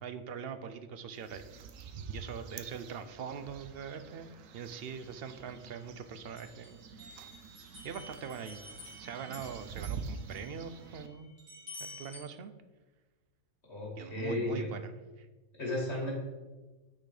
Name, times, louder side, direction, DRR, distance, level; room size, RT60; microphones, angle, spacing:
voice 1, 0.0-1.4 2.1-7.3 7.8-8.6 9.0-11.3 11.8-12.5 14.0-14.9 15.2-15.3, right 6 dB, 60° right, 10 dB, 0.7 m, -42 dB
sound 1, 1.1-11.1, right 5 dB, 80° right, 1.0 m, -47 dB
sound 2, 4.9-5.9 6.4-12.2, left 1 dB, 35° right, 2.3 m, -51 dB
voice 2, 13.6-14.7 15.5-16.1, left 2 dB, 55° left, -3 dB, 2.3 m, -34 dB
9.1 x 4.2 x 4.9 m, 1.2 s
omnidirectional pair, 1.4 m